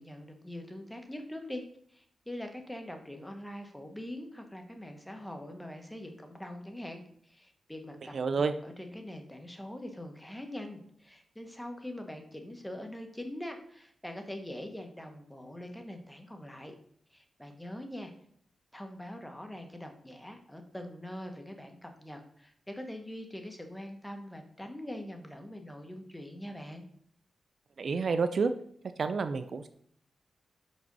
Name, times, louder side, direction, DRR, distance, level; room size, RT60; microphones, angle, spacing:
voice 1, 0.0-16.7 17.1-18.1 18.7-26.9, left 1 dB, 5° left, 4 dB, 1.3 m, -43 dB
voice 2, 8.1-8.5 27.8-28.5 29.0-29.7, right 4 dB, 60° right, 10 dB, 0.5 m, -29 dB
5.4 x 5.2 x 5.4 m, 0.64 s
cardioid pair, 95°, 0 cm